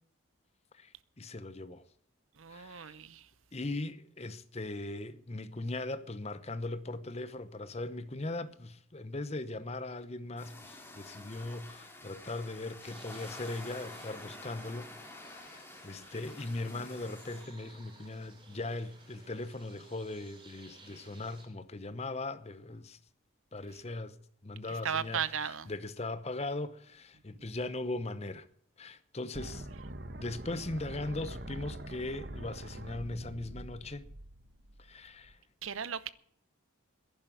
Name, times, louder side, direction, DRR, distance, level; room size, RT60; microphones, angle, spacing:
voice 1, 1.2-1.8 2.5-2.9 3.5-23.0 23.5-24.2 24.4-28.4 28.8-29.7 30.2-34.1 34.8-35.4, left 2 dB, 30° left, 0.9 m, -39 dB
voice 2, 2.4-3.2 24.8-25.7 35.6-36.1, right 7 dB, 75° right, 0.8 m, -35 dB
sound 1, 10.4-17.5, left 2 dB, 10° left, 2.1 m, -49 dB
sound 2, 12.8-21.4, right 2 dB, 25° right, 3.7 m, -58 dB
sound 3, 29.3-35.3, right 1 dB, 50° right, 1.1 m, -44 dB
11.0 x 10.5 x 9.2 m
head